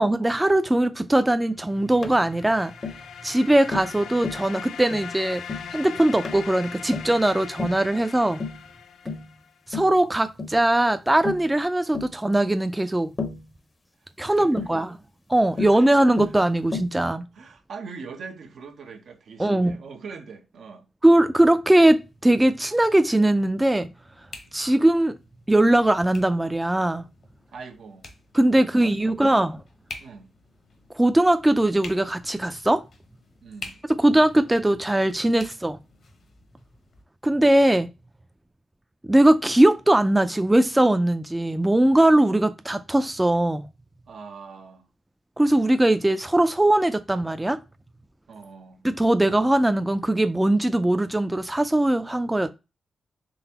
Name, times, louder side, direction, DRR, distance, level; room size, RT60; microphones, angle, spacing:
voice 1, 0.0-2.7 3.2-5.4 5.7-8.4 9.7-13.1 14.2-15.0 15.3-17.3 19.4-19.7 21.0-23.9 24.5-25.1 25.5-27.0 28.3-29.6 30.9-32.8 34.0-35.8 37.2-37.9 39.0-43.7 45.4-47.6 48.8-52.5, right 1 dB, 15° right, 0.4 m, -20 dB
sound 1, 1.8-9.5, left 7 dB, 85° left, 0.4 m, -40 dB
Tap, 2.0-2.2 2.8-3.0 3.7-4.0 4.2-4.5 4.9-5.1 5.5-5.7 6.2-6.5 6.9-7.2 7.6-7.8 8.4-8.6 9.1-9.3 9.7-10.0 10.4-10.6 11.2-11.5 11.9-12.1 13.2-13.5 14.6-14.8 15.6-15.8 16.2-16.4 16.7-17.0, left 4 dB, 45° left, 0.7 m, -32 dB
voice 2, 14.0-14.8 15.6-16.0 16.3-16.4 17.3-20.9 27.5-28.1 28.7-29.4 30.0-30.3 33.4-33.8 44.1-44.9 48.3-48.9, right 5 dB, 70° right, 0.8 m, -42 dB
sound 2, 21.9-37.0, left 3 dB, 65° left, 1.0 m, -48 dB
4.0 x 3.3 x 2.9 m
supercardioid pair, 50°, 0 cm